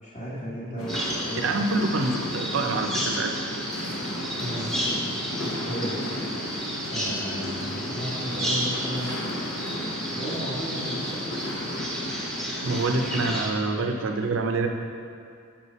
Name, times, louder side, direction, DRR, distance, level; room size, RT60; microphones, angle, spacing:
voice 1, 0.0-1.7 4.4-4.8 5.4-6.0 6.9-9.3 10.1-11.4, equal, 30° left, -9 dB, 1.1 m, -34 dB
sound 1, 0.8-13.4, left 1 dB, 85° left, 0.9 m, -34 dB
Bird vocalization bird call bird song, 0.9-13.5, equal, ahead, 0.8 m, -33 dB
voice 2, 1.4-3.3 12.6-14.7, right 3 dB, 65° right, 4 dB, 0.6 m, -26 dB
6.5 x 5.9 x 4.2 m, 2.3 s
head